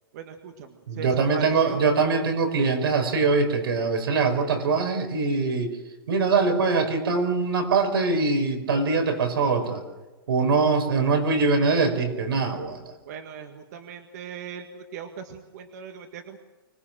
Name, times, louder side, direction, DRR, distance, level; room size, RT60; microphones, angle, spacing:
voice 1, 0.1-1.8 13.1-16.4, right 7 dB, 45° right, 5 dB, 1.8 m, -39 dB
voice 2, 0.9-5.7 6.1-9.8 10.3-12.9, right 4 dB, 75° right, 7 dB, 5.3 m, -23 dB
25.0 x 19.5 x 7.6 m, 1.2 s
hypercardioid pair, 165°, 12 cm